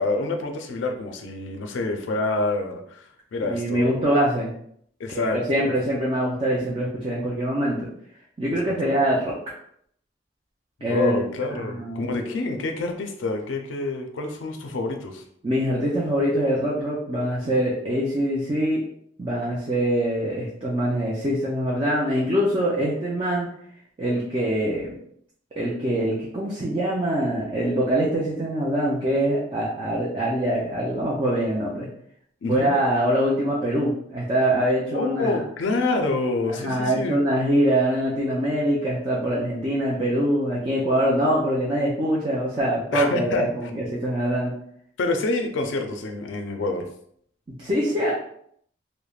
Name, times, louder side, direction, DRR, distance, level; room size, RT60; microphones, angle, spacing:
voice 1, 0.0-4.1 5.0-5.7 8.6-8.9 10.8-15.2 32.4-32.7 34.9-37.2 42.9-43.5 45.0-46.9, left 2 dB, 90° left, 4 dB, 0.4 m, -27 dB
voice 2, 3.5-4.5 5.1-7.9 8.4-9.3 10.8-11.2 11.5-12.3 15.4-18.8 19.2-23.5 24.0-24.9 25.6-31.9 32.5-35.4 36.6-44.5 47.5-48.1, right 1 dB, 30° right, -5 dB, 0.4 m, -24 dB
3.1 x 2.1 x 2.3 m, 0.67 s
head